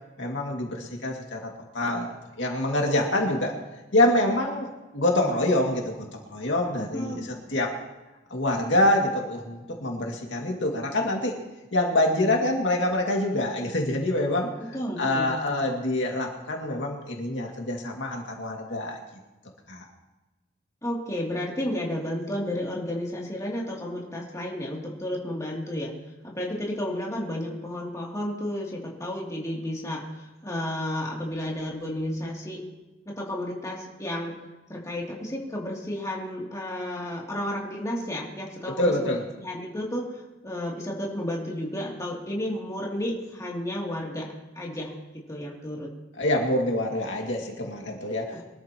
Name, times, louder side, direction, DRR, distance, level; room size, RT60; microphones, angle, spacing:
voice 1, 0.2-1.5 1.7-2.1 2.4-3.5 3.9-7.7 8.3-11.4 11.7-14.5 15.0-19.0 19.7-19.9 38.8-39.2 46.2-48.4, left 1 dB, 75° left, 0 dB, 2.3 m, -26 dB
voice 2, 6.9-7.2 14.6-15.3 20.8-25.9 26.2-32.6 33.1-34.4 34.7-38.9 39.4-44.3 44.5-45.9 48.3-48.4, left 1 dB, 15° left, -3 dB, 2.8 m, -32 dB
24.0 x 13.0 x 3.0 m, 1.1 s
head